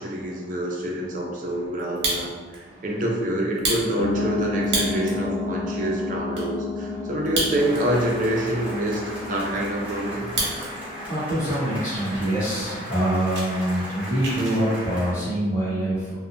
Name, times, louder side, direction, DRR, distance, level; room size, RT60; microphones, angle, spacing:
voice 1, 0.0-10.3, right 1 dB, 45° right, -2 dB, 0.4 m, -26 dB
Fire, 1.8-2.6 3.0-3.1 3.5-5.2 5.7-5.8 6.0-6.5 7.2-8.0 8.3-8.4 8.9-10.7 11.0-11.5 12.0-12.1 12.4-12.6 12.9-14.6, right 2 dB, 70° right, 0.8 m, -30 dB
sound 1, 4.0-12.1, left 3 dB, 70° left, 0.4 m, -32 dB
sound 2, 7.6-15.1, equal, 10° right, 0.7 m, -36 dB
voice 2, 10.5-16.1, right 1 dB, 40° left, -15 dB, 0.9 m, -25 dB
2.8 x 2.1 x 2.5 m, 1.4 s
head